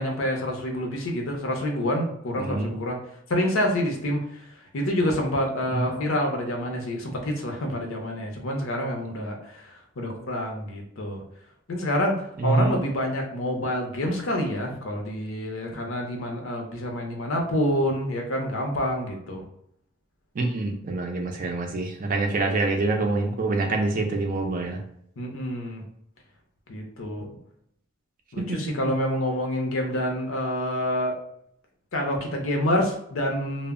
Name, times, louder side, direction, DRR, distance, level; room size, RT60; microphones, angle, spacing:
voice 1, 0.0-3.0 3.3-4.4 4.7-11.2 11.7-19.4 25.2-25.8 26.7-27.3 28.3-31.1 31.9-33.7, left 1 dB, 70° left, 1 dB, 0.6 m, -27 dB
voice 2, 2.4-2.8 5.7-5.9 12.4-12.8 20.4-24.8 28.4-28.5, right 3 dB, 40° right, 3 dB, 0.4 m, -26 dB
2.1 x 2.0 x 3.5 m, 0.71 s
head